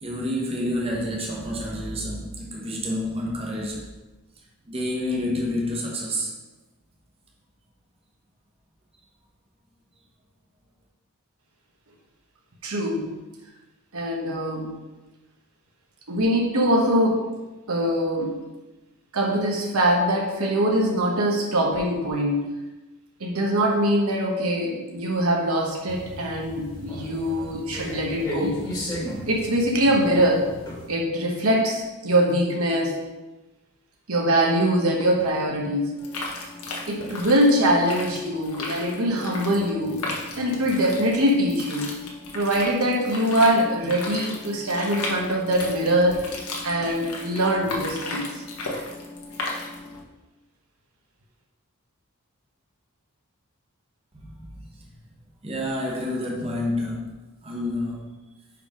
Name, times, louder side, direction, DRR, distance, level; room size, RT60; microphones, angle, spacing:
voice 1, 0.0-3.9 4.6-6.3 54.1-54.9 55.4-57.1 57.4-58.1, left 1 dB, 25° right, -1 dB, 1.1 m, -29 dB
voice 2, 12.6-13.1 13.9-14.7 16.1-17.3 17.7-18.4 19.1-22.5 23.2-28.6 29.3-30.5 30.9-33.0 34.1-35.9 36.9-40.0 40.3-42.0 42.3-46.3 46.6-48.4, equal, 70° right, -1 dB, 1.0 m, -23 dB
sound 1, 25.9-30.9, equal, 20° left, 1.6 m, -35 dB
sound 2, 36.0-50.0, left 2 dB, 85° left, 1.2 m, -35 dB
5.1 x 4.8 x 5.0 m, 1.1 s
head